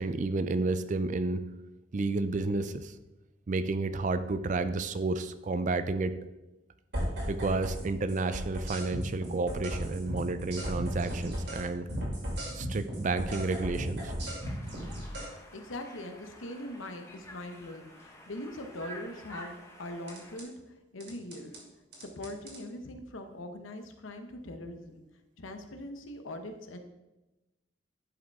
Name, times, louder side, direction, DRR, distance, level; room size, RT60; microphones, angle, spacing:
voice 1, 0.0-1.4 1.9-2.9 3.5-6.2 7.3-11.9 12.5-14.1, right 3 dB, 40° right, 12 dB, 0.4 m, -31 dB
sound 1, 6.9-7.8 8.1-11.6 11.9-15.3 20.1-20.4 21.0-21.6 21.9-22.6, equal, 60° right, 2.3 m, -35 dB
Conversation, 14.4-20.4, equal, 15° left, 0.9 m, -50 dB
voice 2, 15.5-20.5 20.9-21.6 22.0-25.0 25.4-26.8, left 1 dB, 85° left, 7 dB, 0.9 m, -41 dB
11.0 x 5.1 x 3.5 m, 1.0 s
head